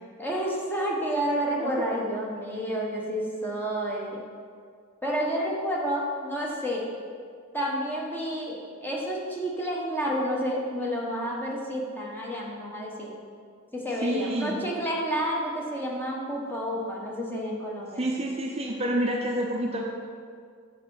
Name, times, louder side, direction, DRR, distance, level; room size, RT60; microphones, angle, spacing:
voice 1, 0.2-4.2 5.0-6.8 7.5-13.1 13.7-18.1, equal, 10° left, -3 dB, 1.1 m, -30 dB
voice 2, 14.0-14.6 18.0-19.8, right 1 dB, 30° right, 0 dB, 0.6 m, -28 dB
7.1 x 4.5 x 5.6 m, 2.1 s
head